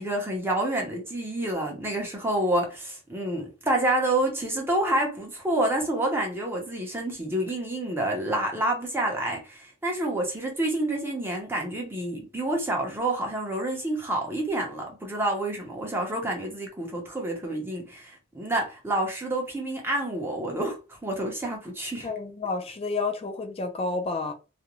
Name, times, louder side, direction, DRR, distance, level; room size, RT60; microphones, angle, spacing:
voice 1, 0.0-22.1, right 1 dB, 10° right, 0.7 m, -28 dB
voice 2, 22.0-24.3, left 3 dB, 30° left, 0.4 m, -30 dB
2.5 x 2.1 x 2.8 m
head